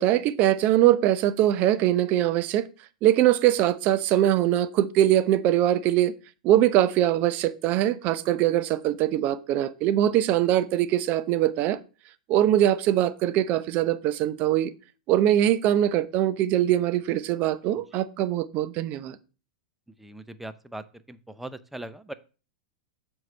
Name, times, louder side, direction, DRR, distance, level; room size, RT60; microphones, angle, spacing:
voice 1, 0.0-2.7 3.0-6.1 6.4-11.8 12.3-14.7 15.1-19.2, right 12 dB, 45° right, 0.7 m, -22 dB
voice 2, 20.0-22.1, right 1 dB, 5° right, 0.6 m, -40 dB
7.6 x 4.8 x 5.4 m
hypercardioid pair, 105°, 4 cm